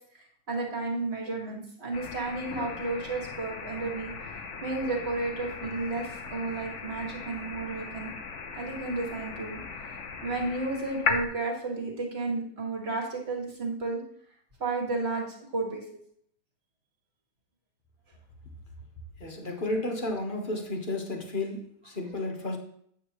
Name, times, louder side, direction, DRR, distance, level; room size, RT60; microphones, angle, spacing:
voice 1, 0.5-4.1 4.6-8.1 8.5-9.6 10.2-14.0 14.6-15.9 22.0-22.2, right 3 dB, 30° right, -1 dB, 2.0 m, -32 dB
sound 1, 1.9-11.3, left 5 dB, 60° left, 0.7 m, -37 dB
voice 2, 19.2-22.6, left 2 dB, 30° left, 2 dB, 1.1 m, -32 dB
9.0 x 8.2 x 3.1 m, 0.65 s
omnidirectional pair, 2.3 m